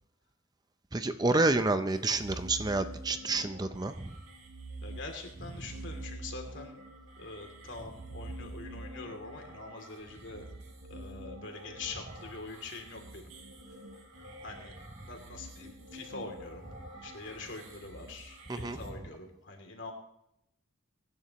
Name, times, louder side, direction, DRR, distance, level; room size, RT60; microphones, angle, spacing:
voice 1, 0.9-4.1 18.5-18.8, right 2 dB, 20° right, 9 dB, 0.5 m, -29 dB
sound 1, 1.9-18.9, right 1 dB, 85° right, 5.0 m, -47 dB
voice 2, 4.8-6.8 7.2-10.5 10.9-13.3 13.6-13.8 14.4-19.9, left 3 dB, 60° left, 3 dB, 2.8 m, -44 dB
22.5 x 11.0 x 3.0 m, 0.79 s
head